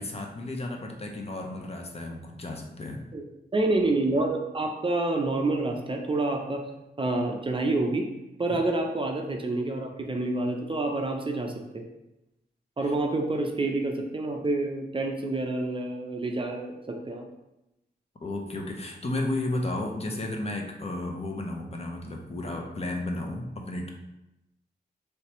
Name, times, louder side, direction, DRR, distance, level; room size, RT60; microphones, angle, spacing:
voice 1, 0.0-3.0 8.5-8.6 12.8-12.9 18.2-23.9, left 2 dB, 35° left, 2 dB, 0.5 m, -33 dB
voice 2, 3.5-6.6 7.0-8.1 8.4-11.8 12.8-17.3, right 2 dB, 30° right, 2 dB, 0.4 m, -28 dB
3.2 x 2.9 x 2.9 m, 0.91 s
wide cardioid pair, 80°, 17 cm